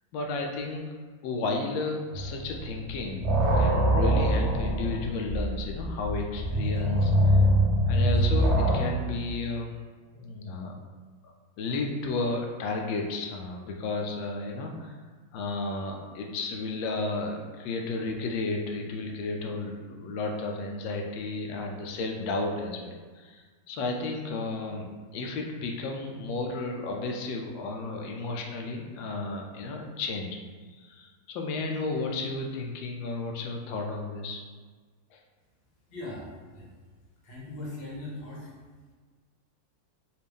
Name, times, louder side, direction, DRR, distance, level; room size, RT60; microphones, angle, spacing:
voice 1, 0.1-0.8 1.2-3.3 3.5-7.5 7.9-9.7 10.1-10.7 11.2-15.0 15.3-30.3 30.7-34.4 35.1-35.2, left 3 dB, 85° left, 1 dB, 1.3 m, -33 dB
sound 1, 2.1-2.6 2.9-8.8, equal, 60° right, 0.7 m, -24 dB
voice 2, 35.9-36.3 36.5-36.7 37.2-38.5, left 2 dB, 40° left, -5 dB, 1.0 m, -39 dB
4.2 x 2.6 x 3.4 m, 1.5 s
omnidirectional pair, 2.0 m